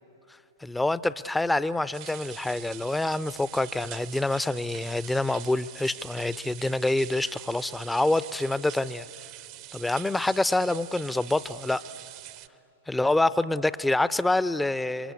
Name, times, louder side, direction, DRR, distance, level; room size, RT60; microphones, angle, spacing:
voice 1, 0.6-9.1 9.7-11.8 12.9-15.1, left 2 dB, 5° left, 17 dB, 0.5 m, -26 dB
sound 1, 1.9-12.5, right 16 dB, 45° right, 0.7 m, -44 dB
27.5 x 23.5 x 8.4 m, 2.9 s
figure-of-eight pair, 110°, 0 cm